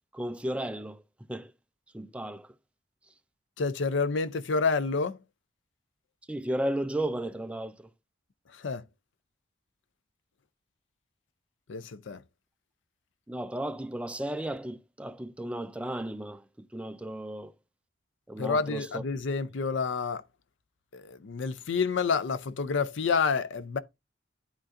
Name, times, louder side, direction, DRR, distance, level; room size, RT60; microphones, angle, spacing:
voice 1, 0.1-1.0 1.3-1.5 1.9-2.5 6.3-7.9 13.3-17.5 18.3-19.0, right 1 dB, 5° right, 0.3 m, -34 dB
voice 2, 3.6-5.2 8.5-8.8 11.7-12.2 18.4-20.2 20.9-23.8, left 4 dB, 70° left, 0.5 m, -29 dB
11.0 x 3.7 x 2.5 m
head